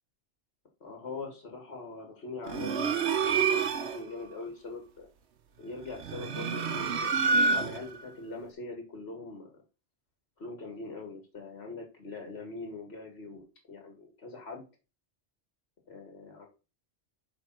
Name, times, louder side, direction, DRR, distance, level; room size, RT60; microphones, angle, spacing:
voice 1, 0.8-5.1 5.6-9.5 10.4-14.7 15.9-16.5, left 3 dB, 70° left, 2 dB, 1.9 m, -42 dB
sound 1, 2.5-4.1 5.9-8.0, right 5 dB, 75° right, 1.2 m, -28 dB
7.9 x 3.6 x 5.8 m, 0.32 s
omnidirectional pair, 1.2 m